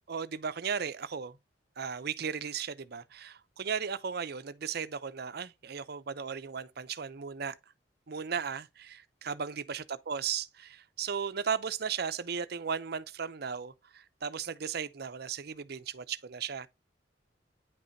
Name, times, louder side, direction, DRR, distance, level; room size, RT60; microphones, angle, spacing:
voice 1, 0.1-1.4 1.8-7.5 8.1-16.7, right 6 dB, 60° right, 0.6 m, -36 dB
9.5 x 5.4 x 2.7 m
head